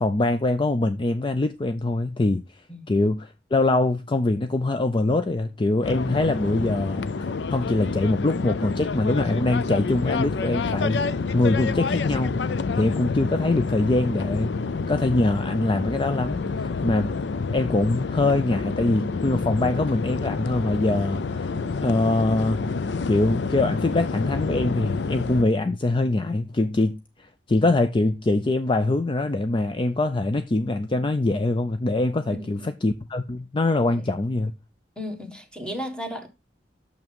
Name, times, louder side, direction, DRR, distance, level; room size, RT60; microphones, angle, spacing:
voice 1, 0.0-2.4 2.9-11.1 11.3-14.5 14.9-17.1 17.5-21.5 21.8-22.7 23.1-34.5, left 2 dB, 30° left, 0.5 m, -23 dB
sound 1, 5.8-25.4, left 4 dB, 80° left, 0.5 m, -28 dB
voice 2, 32.3-32.7 33.9-34.1 35.0-36.3, equal, 5° left, 1.6 m, -35 dB
6.6 x 6.0 x 5.2 m
head